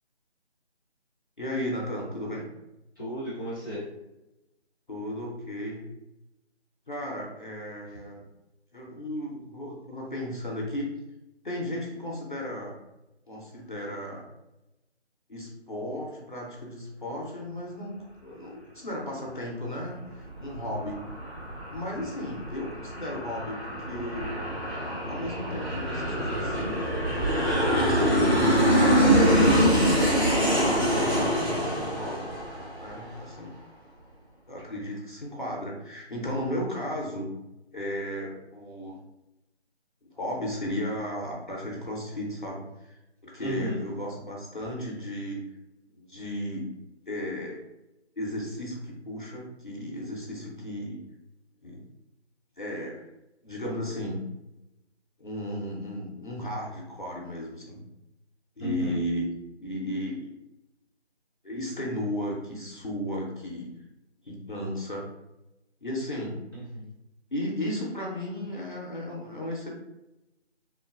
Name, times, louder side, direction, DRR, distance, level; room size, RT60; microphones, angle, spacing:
voice 1, 1.4-2.4 4.9-5.8 6.9-8.2 8.7-10.9 11.4-12.7 13.3-14.2 15.3-21.0 21.7-24.6 25.0-27.0 27.6-28.7 29.0-30.6 31.1-32.3 32.8-33.5 34.5-37.3 37.7-39.0 40.1-45.4 45.9-46.7 47.1-47.6 48.2-51.0 51.6-51.8 52.6-53.0 53.4-54.2 55.2-57.8 58.6-59.3 59.6-60.3 61.4-63.7 64.2-65.0 65.8-66.4 67.3-69.7, left 1 dB, 45° left, -3 dB, 0.5 m, -35 dB
voice 2, 3.0-3.8 43.4-43.8 58.6-59.0 66.5-66.9, equal, 20° right, -14 dB, 0.8 m, -34 dB
Aircraft, 20.0-33.3, equal, 70° right, 1.3 m, -25 dB
3.0 x 2.1 x 2.3 m, 0.94 s
figure-of-eight pair, 160°, 34 cm